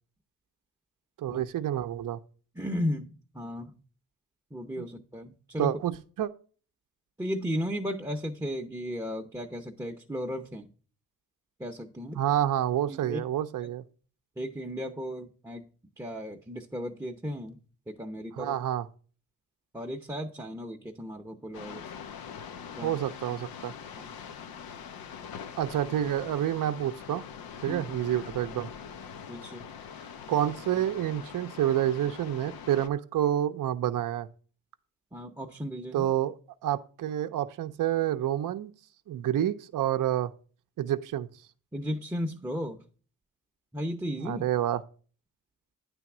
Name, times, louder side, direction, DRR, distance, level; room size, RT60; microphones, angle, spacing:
voice 1, 1.2-2.2 4.8-4.9 5.6-6.3 12.2-13.8 18.4-18.9 22.8-23.7 25.6-27.2 27.6-28.7 30.3-34.3 35.9-36.3 36.6-38.7 39.1-40.3 40.8-41.3 44.2-44.8, right 11 dB, 65° right, 0.6 m, -28 dB
voice 2, 2.5-3.7 4.5-5.7 7.2-10.7 11.6-12.2 12.9-13.2 13.6-13.7 14.4-15.6 16.0-17.6 17.9-18.6 19.7-21.9 22.7-22.9 23.9-24.1 27.7-27.8 29.3-29.7 35.1-36.1 41.7-42.8 43.7-44.4, equal, 10° right, 0.7 m, -35 dB
sound 1, 21.5-32.9, left 7 dB, 85° left, 0.7 m, -43 dB
9.2 x 3.5 x 5.9 m
cardioid pair, 80°, 35 cm